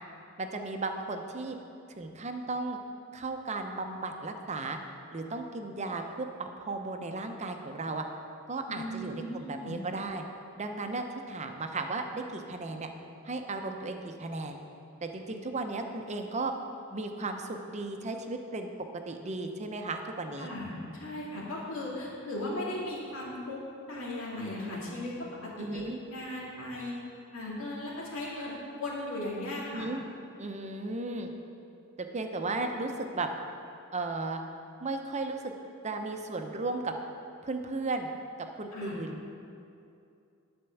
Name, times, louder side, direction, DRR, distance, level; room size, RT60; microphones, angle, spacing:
voice 1, 0.4-1.6 2.0-2.8 3.1-4.8 5.1-8.0 8.5-10.3 10.6-12.9 13.2-14.6 15.0-16.5 16.9-18.7 19.1-20.5 25.6-26.0 29.7-30.0 30.4-31.3 32.0-33.3 33.9-34.4 34.8-35.5 35.8-36.9 37.4-38.1 38.4-39.2, right 3 dB, 35° right, 5 dB, 0.7 m, -35 dB
voice 2, 8.7-9.8 20.4-23.6 23.9-25.1 25.6-26.9 27.3-29.9 38.7-38.9, left 1 dB, 70° left, -5 dB, 2.3 m, -37 dB
11.0 x 4.4 x 7.0 m, 2.6 s
head